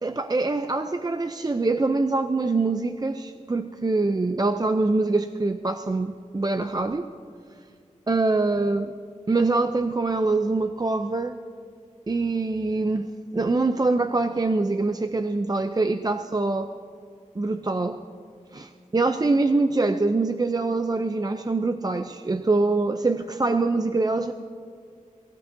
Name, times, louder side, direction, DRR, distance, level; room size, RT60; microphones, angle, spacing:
voice 1, 0.0-7.1 8.1-9.0 9.3-11.3 12.1-16.7 17.4-18.0 18.5-24.3, right 3 dB, 30° right, 8 dB, 0.5 m, -24 dB
22.5 x 15.5 x 2.7 m, 2.3 s
wide cardioid pair, 55°, 14 cm